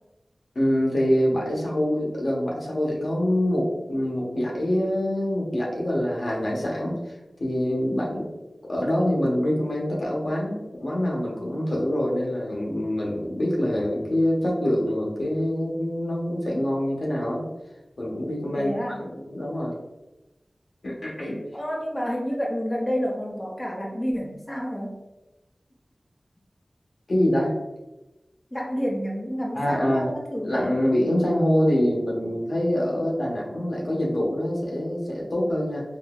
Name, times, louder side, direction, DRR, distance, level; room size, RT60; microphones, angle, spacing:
voice 1, 0.5-7.1 7.4-8.3 8.6-17.5 18.0-19.7 20.8-21.4 27.1-27.5 29.5-30.1 30.4-35.8, equal, 70° left, -3 dB, 0.9 m, -25 dB
voice 2, 18.5-19.1 21.5-25.0 28.5-30.7, equal, 25° left, -2 dB, 0.5 m, -29 dB
3.7 x 2.6 x 2.3 m, 1.0 s
wide cardioid pair, 60°, 0 cm